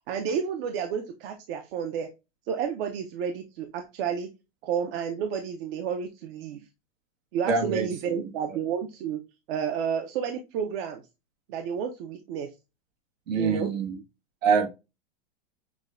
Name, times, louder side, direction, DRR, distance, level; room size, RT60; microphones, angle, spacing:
voice 1, 0.1-2.1 2.5-4.3 4.6-6.6 7.3-9.2 9.5-11.0 11.5-12.5 13.3-13.7, right 7 dB, 50° right, 5 dB, 0.6 m, -30 dB
voice 2, 7.5-8.6 13.3-14.0 14.4-14.7, right 5 dB, 90° right, 3 dB, 1.3 m, -26 dB
6.0 x 2.2 x 2.4 m, 0.26 s
supercardioid pair, 145°, 38 cm